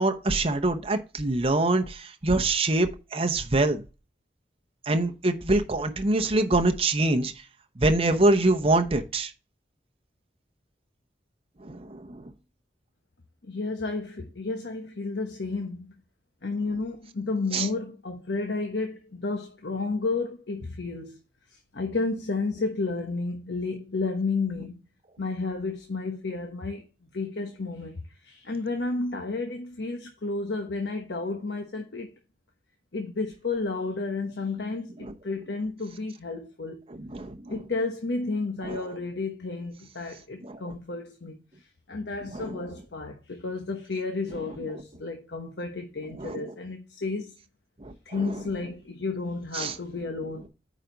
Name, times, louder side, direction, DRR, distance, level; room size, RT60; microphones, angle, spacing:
voice 1, 0.0-3.9 4.9-7.3 7.8-9.3 11.6-12.3 17.5-17.7 35.0-35.1 36.9-37.6 38.6-38.8 40.4-40.7 42.3-42.7 46.2-46.5 47.8-48.4 49.5-49.7, right 2 dB, 35° right, 0.9 m, -25 dB
voice 2, 13.4-15.9 16.4-21.2 21.5-24.8 25.2-26.8 27.1-32.1 32.9-36.8 37.5-41.4 41.9-47.4 48.0-50.5, left 3 dB, 70° left, 1.1 m, -32 dB
9.1 x 5.1 x 4.0 m
head